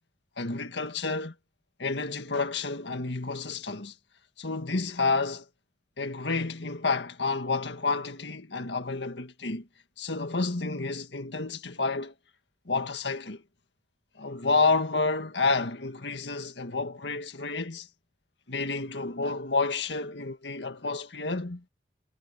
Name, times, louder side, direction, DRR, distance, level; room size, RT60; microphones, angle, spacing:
voice 1, 0.4-1.3 1.8-3.9 4.4-5.5 6.0-9.7 10.0-12.1 12.7-13.4 14.2-17.9 18.5-21.6, left 3 dB, 80° left, 1.9 m, -30 dB
head